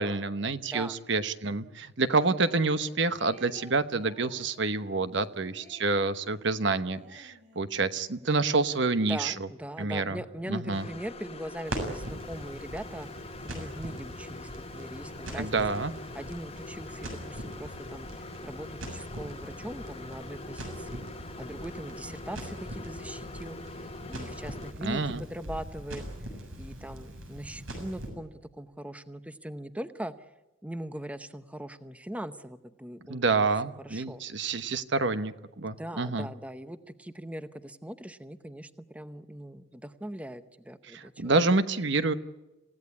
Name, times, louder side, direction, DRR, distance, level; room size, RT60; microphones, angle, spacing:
voice 1, 0.0-9.3 9.8-10.2 10.5-10.9 15.4-15.9 24.8-25.2 33.1-36.3 40.9-42.1, right 3 dB, 60° right, 12 dB, 1.1 m, -28 dB
sound 1, 2.0-2.9 3.2-7.8, equal, 40° right, 5.4 m, -52 dB
voice 2, 9.0-13.1 13.5-15.8 16.1-21.0 21.4-26.0 26.6-30.1 30.6-33.5 33.8-34.2 35.8-41.5, right 1 dB, 5° right, 11 dB, 0.8 m, -41 dB
sound 2, 10.7-24.7, left 2 dB, 30° left, 1.2 m, -44 dB
Crackle, 11.6-28.1, right 1 dB, 85° right, 7.1 m, -41 dB
28.0 x 16.5 x 9.7 m, 1.1 s
head